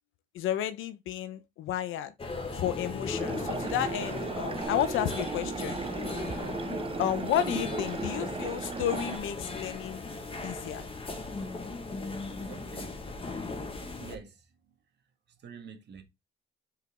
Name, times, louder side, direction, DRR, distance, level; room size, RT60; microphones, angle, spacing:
voice 1, 0.3-2.1 2.5-5.8 7.0-10.1 10.4-10.9, left 11 dB, 85° left, 0.8 m, -32 dB
sound 1, 2.2-14.2, left 3 dB, 25° left, 1.5 m, -37 dB
sound 2, 3.2-9.2, right 5 dB, 25° right, 0.7 m, -36 dB
voice 2, 12.5-13.0 14.0-14.7 15.3-16.0, right 6 dB, 60° right, 1.6 m, -48 dB
5.8 x 4.5 x 3.5 m
cardioid pair, 90°, 20 cm